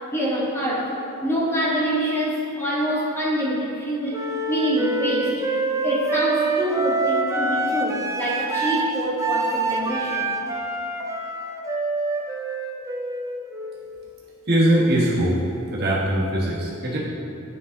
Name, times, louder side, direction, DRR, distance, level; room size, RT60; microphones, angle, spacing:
voice 1, 0.1-4.2 4.5-5.3 5.8-10.4, equal, 10° left, -6 dB, 1.1 m, -25 dB
Wind instrument woodwind instrument, 4.1-13.9, right 3 dB, 15° right, 0.4 m, -26 dB
voice 2, 14.5-15.4 15.7-17.0, right 1 dB, 45° right, -6 dB, 1.5 m, -21 dB
10.0 x 5.2 x 2.7 m, 2.8 s
head